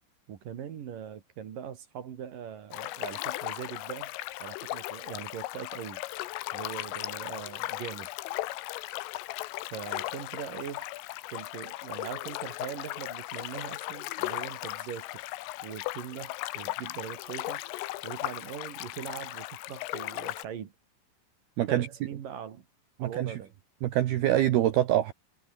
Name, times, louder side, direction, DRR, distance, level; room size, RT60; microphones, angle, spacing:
voice 1, 0.3-4.1 4.4-6.0 6.5-8.1 9.7-10.8 11.3-15.4 15.6-17.6 18.0-20.7 21.7-22.6 23.0-23.5, right 8 dB, 55° right, 3.0 m, -41 dB
sound 1, 2.7-20.5, left 18 dB, 85° left, 3.7 m, -37 dB
voice 2, 23.0-23.4 23.8-25.1, right 13 dB, 70° right, 2.6 m, -25 dB
omnidirectional pair, 5.8 m